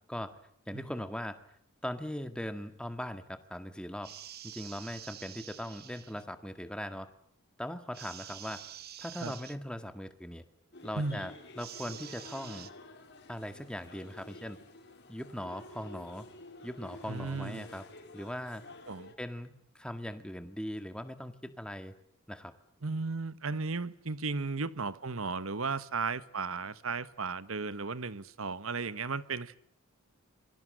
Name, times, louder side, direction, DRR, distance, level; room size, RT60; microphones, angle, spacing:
voice 1, 0.7-1.4 1.8-4.1 4.4-7.1 7.6-8.6 9.0-10.4 10.8-12.7 13.3-14.6 15.1-16.3 16.6-17.8 18.1-18.6 19.2-21.9 22.3-22.5, equal, 5° left, 1.9 m, -40 dB
sound 1, 4.0-6.2 7.9-9.6 11.6-12.7, right 11 dB, 45° right, 1.2 m, -47 dB
sound 2, 10.7-19.1, left 2 dB, 50° left, 4.1 m, -51 dB
voice 2, 10.9-11.2 17.1-17.6 18.9-19.1 22.8-29.6, right 4 dB, 75° right, 1.3 m, -35 dB
27.0 x 23.0 x 7.8 m
head